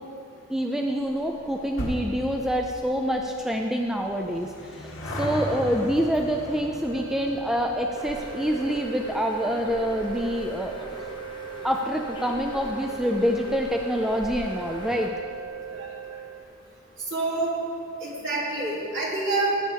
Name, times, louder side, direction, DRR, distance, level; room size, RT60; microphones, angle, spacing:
voice 1, 0.5-10.8 11.6-15.1, equal, ahead, 2 dB, 0.4 m, -26 dB
sound 1, 1.0-13.8 14.1-14.2 15.0-15.1 15.3-15.4 15.7-15.8, equal, 70° left, 2.2 m, -39 dB
sound 2, 6.8-16.4, right 8 dB, 80° right, 0.5 m, -39 dB
Bird, 8.0-15.1, left 1 dB, 20° left, 1.0 m, -42 dB
voice 2, 17.1-17.5 18.0-19.6, right 2 dB, 55° right, -5 dB, 2.7 m, -27 dB
16.5 x 8.6 x 3.4 m, 2.7 s
head